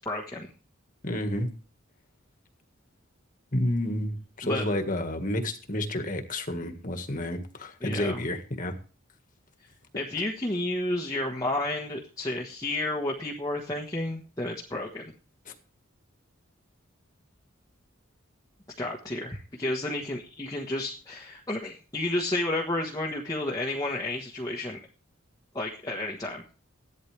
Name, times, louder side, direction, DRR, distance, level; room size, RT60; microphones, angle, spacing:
voice 1, 0.0-0.5 4.4-4.7 7.8-8.2 9.9-15.1 18.8-24.8 25.5-26.4, left 1 dB, 20° left, -1 dB, 1.4 m, -31 dB
voice 2, 1.0-1.5 3.5-8.7 15.5-15.6, left 1 dB, 40° left, 6 dB, 1.7 m, -30 dB
15.0 x 11.5 x 3.4 m, 0.37 s
head